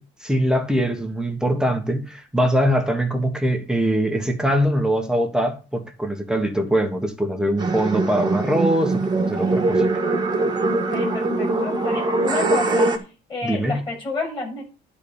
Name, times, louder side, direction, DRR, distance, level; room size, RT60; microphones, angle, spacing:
voice 1, 0.0-9.9 13.4-13.9, right 1 dB, 5° right, 1.4 m, -22 dB
sound 1, 7.6-13.0, right 2 dB, 20° right, 1.7 m, -22 dB
voice 2, 10.9-12.9 13.3-14.6, left 3 dB, 25° left, 6.6 m, -30 dB
12.0 x 4.3 x 7.1 m
cardioid pair, 130°, 20 cm